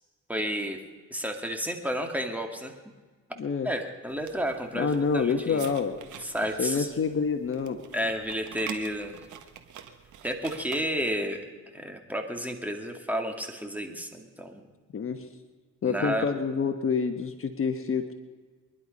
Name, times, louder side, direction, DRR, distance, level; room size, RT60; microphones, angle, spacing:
voice 1, 0.3-0.8 1.1-2.7 3.6-5.7 6.2-6.9 7.9-9.1 10.2-11.4 11.7-14.7 15.8-16.3, equal, 5° right, 3 dB, 2.3 m, -31 dB
voice 2, 3.4-3.7 4.7-6.0 6.6-7.8 14.9-15.3 15.8-18.1, left 5 dB, 45° left, 7 dB, 1.3 m, -27 dB
sound 1, 4.1-11.3, right 9 dB, 75° right, 1.5 m, -46 dB
23.5 x 11.5 x 5.4 m, 1.4 s
cardioid pair, 90°, 30 cm